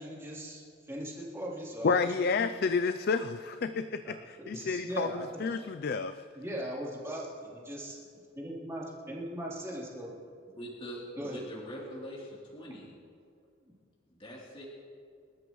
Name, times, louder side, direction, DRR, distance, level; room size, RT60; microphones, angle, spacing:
voice 1, 0.0-2.1 4.4-5.4 6.3-8.0 8.3-10.1 11.2-11.4, right 1 dB, 15° right, -6 dB, 3.4 m, -39 dB
voice 2, 1.8-6.2, left 4 dB, 50° left, 10 dB, 0.4 m, -30 dB
voice 3, 10.5-12.9 14.1-14.6, equal, 30° left, -6 dB, 3.3 m, -43 dB
28.5 x 13.5 x 3.1 m, 2.2 s
head